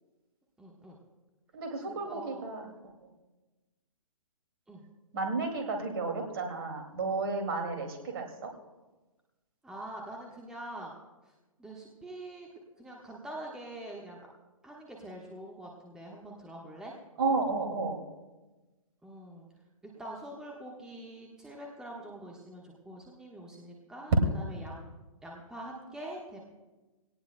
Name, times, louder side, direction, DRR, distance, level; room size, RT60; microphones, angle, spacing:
voice 1, 0.6-1.0 1.9-2.5 4.7-4.8 9.6-10.9 11.2-11.3 11.6-12.5 12.8-14.2 14.6-17.0 19.0-19.5 19.8-24.9 25.2-26.5, right 1 dB, 5° right, -2 dB, 1.2 m, -44 dB
voice 2, 1.5-2.6 3.0-3.1 5.1-8.5 17.2-18.0, right 3 dB, 45° right, 3 dB, 2.3 m, -32 dB
19.5 x 17.5 x 2.2 m, 1.2 s
figure-of-eight pair, 125°, 18 cm